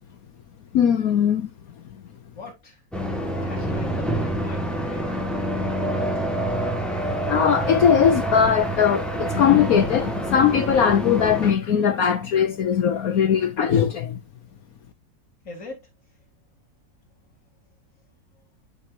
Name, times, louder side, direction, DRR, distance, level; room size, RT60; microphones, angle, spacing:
voice 1, 0.7-1.5 7.0-14.2, left 8 dB, 65° left, 1.1 m, -20 dB
voice 2, 2.3-2.8 3.4-5.1 15.4-15.9, left 3 dB, 45° left, 4.6 m, -41 dB
sound 1, 2.9-11.5, right 1 dB, ahead, 1.6 m, -27 dB
12.5 x 4.6 x 2.7 m
omnidirectional pair, 1.8 m